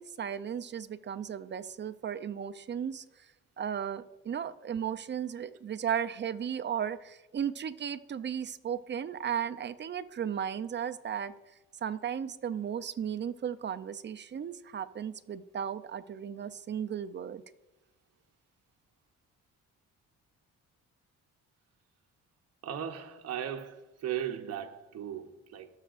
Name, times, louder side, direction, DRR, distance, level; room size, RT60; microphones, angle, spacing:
voice 1, 0.0-3.0 3.6-11.3 11.8-17.4, right 8 dB, 35° right, 0.6 m, -35 dB
voice 2, 22.6-25.7, right 9 dB, 55° right, 0.9 m, -37 dB
17.5 x 6.5 x 2.5 m
cardioid pair, 90°, 30 cm